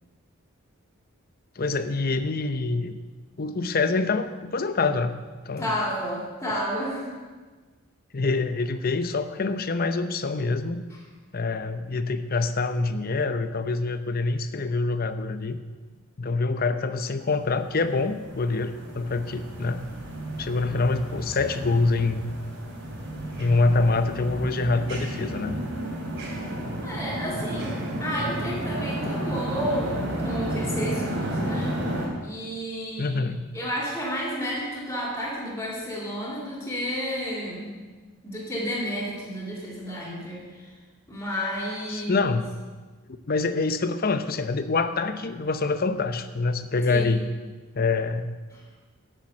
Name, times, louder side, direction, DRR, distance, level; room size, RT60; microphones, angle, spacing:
voice 1, 1.6-3.0 3.4-5.1 5.5-5.7 8.1-10.8 11.3-15.6 16.2-19.8 20.4-22.3 23.4-25.6 33.0-33.5 41.9-42.5 43.3-47.3 47.7-48.3, left 3 dB, 45° left, 10 dB, 0.7 m, -25 dB
voice 2, 5.6-7.1 26.8-31.9 32.2-33.2 33.5-37.8 38.2-40.7 41.1-42.2 46.9-47.1 48.5-48.6, equal, 10° left, -5 dB, 3.0 m, -31 dB
sound 1, 17.5-32.1, right 1 dB, 55° right, 2.8 m, -32 dB
9.0 x 8.7 x 7.8 m, 1.4 s
head